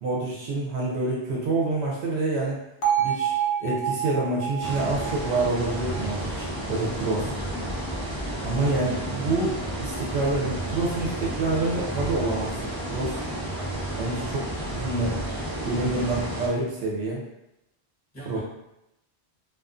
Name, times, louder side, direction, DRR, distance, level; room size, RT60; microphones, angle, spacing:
voice 1, 0.0-2.6 3.0-7.3 8.4-13.2 14.0-15.2 15.6-17.2 18.2-18.4, right 2 dB, 75° right, -3 dB, 0.9 m, -27 dB
Bell, 2.8-6.9, right 9 dB, 75° left, 0.9 m, -28 dB
sound 1, 4.6-16.5, right 1 dB, 25° right, 0.6 m, -31 dB
voice 2, 7.2-7.7 18.1-18.4, right 1 dB, 20° left, -10 dB, 1.0 m, -40 dB
2.4 x 2.3 x 2.4 m, 0.89 s
omnidirectional pair, 1.1 m